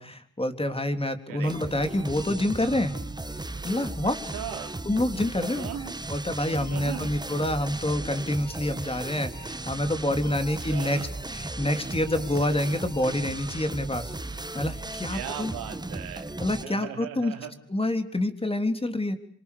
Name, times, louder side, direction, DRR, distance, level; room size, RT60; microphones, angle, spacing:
voice 1, 0.0-2.9 3.6-4.2 4.9-5.7 6.1-11.0 11.3-14.2 14.5-15.5 16.4-17.3 17.7-19.2, left 1 dB, 15° left, 8 dB, 3.4 m, -27 dB
sound 1, 1.4-16.6, right 2 dB, 10° right, 1.4 m, -36 dB
voice 2, 4.0-4.7 5.6-6.0 6.7-7.2 10.6-11.1 15.1-17.5, right 10 dB, 80° right, 6 dB, 3.0 m, -38 dB
25.5 x 24.5 x 6.9 m, 0.69 s
hypercardioid pair, 55°, 34 cm